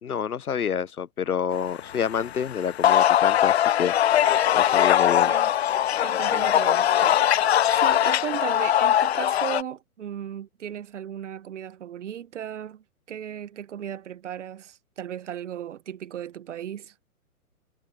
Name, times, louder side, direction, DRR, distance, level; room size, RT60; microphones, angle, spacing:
voice 1, 0.0-3.9 4.6-5.3, left 7 dB, 85° left, 0.8 m, -28 dB
sound 1, 1.9-9.6, left 11 dB, 50° left, 0.5 m, -21 dB
voice 2, 6.0-16.9, right 10 dB, 55° right, 1.5 m, -36 dB
figure-of-eight pair, 125°, 43 cm